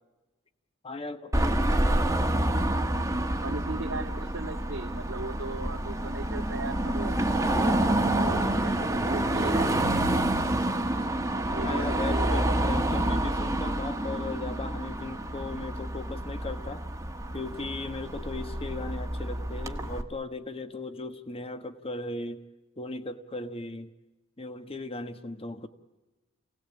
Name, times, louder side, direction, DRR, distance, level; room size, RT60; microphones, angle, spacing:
voice 1, 0.8-2.1 11.6-16.8 17.3-22.4 22.8-23.9 24.4-25.7, left 2 dB, 30° left, 9 dB, 1.4 m, -37 dB
Car passing by / Traffic noise roadway noise / Engine, 1.3-20.0, right 1 dB, 15° right, 1.5 m, -28 dB
voice 2, 3.4-7.2 7.5-10.2 11.4-12.7, right 3 dB, 80° right, -7 dB, 2.4 m, -38 dB
28.5 x 18.5 x 8.6 m, 1.1 s
head